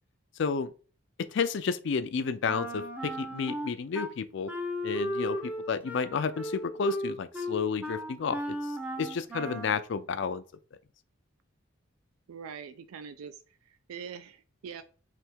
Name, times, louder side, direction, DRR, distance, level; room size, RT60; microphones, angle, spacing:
voice 1, 0.4-0.7 1.2-4.5 4.8-8.6 9.0-10.4, left 5 dB, 55° left, 0.4 m, -31 dB
Wind instrument woodwind instrument, 2.5-4.1 4.5-9.8, equal, 10° right, 0.5 m, -35 dB
voice 2, 12.3-14.8, right 6 dB, 90° right, 0.4 m, -43 dB
3.4 x 2.7 x 4.4 m
head